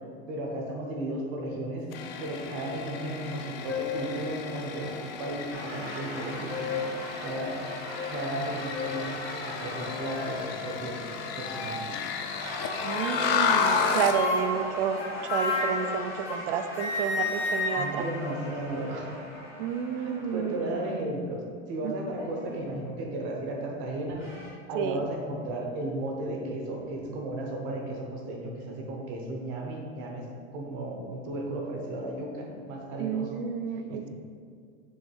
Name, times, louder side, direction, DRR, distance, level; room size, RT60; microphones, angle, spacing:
voice 1, 0.3-1.9 2.2-7.6 8.1-9.1 9.4-11.0 11.3-12.3 17.7-19.2 20.0-21.4 21.7-24.2 24.7-30.2 30.5-33.4 33.9-34.1, right 1 dB, 35° right, 1 dB, 0.9 m, -35 dB
sound 1, 1.9-14.2, left 6 dB, 60° left, 0.6 m, -32 dB
sound 2, 3.3-3.4 3.7-4.1 4.8-4.9 6.2-6.9 7.3-7.5 7.9-8.1 8.7-9.0 9.7-10.4 11.4-11.9 12.8-13.4 14.0-16.5 16.8-19.1, left 3 dB, 85° left, 1.1 m, -33 dB
sound 3, 5.5-11.9 12.2-20.9 22.1-22.9 24.0-24.5, equal, 10° right, 0.7 m, -41 dB
voice 2, 12.8-18.0 19.6-20.9 21.8-22.1 24.7-25.1 33.0-34.1, right 7 dB, 55° right, 9 dB, 0.5 m, -31 dB
6.3 x 3.2 x 4.6 m, 2.2 s
supercardioid pair, 160°, 33 cm